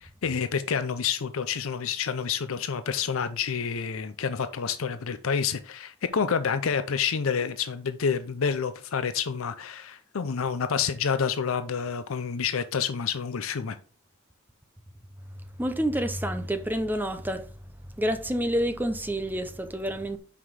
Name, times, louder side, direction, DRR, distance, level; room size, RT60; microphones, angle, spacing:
voice 1, 0.0-13.8, left 6 dB, 70° left, 0.5 m, -28 dB
voice 2, 15.6-17.5 18.0-20.2, equal, 10° right, 0.7 m, -28 dB
5.7 x 4.9 x 6.2 m
head